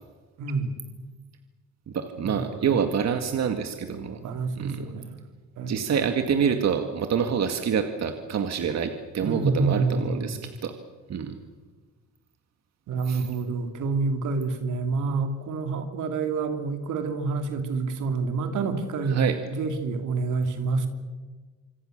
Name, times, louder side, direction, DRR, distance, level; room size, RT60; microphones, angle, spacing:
voice 1, 0.4-0.7 2.2-2.8 4.2-5.1 5.6-5.8 9.2-10.4 12.9-20.9, right 4 dB, 80° right, 6 dB, 3.0 m, -28 dB
voice 2, 1.9-4.2 4.6-4.8 5.7-10.7 11.1-11.4 13.1-13.3 19.0-19.4, right 7 dB, 60° right, 6 dB, 2.0 m, -27 dB
27.0 x 24.5 x 6.7 m, 1.4 s
cardioid pair, 90°, 30 cm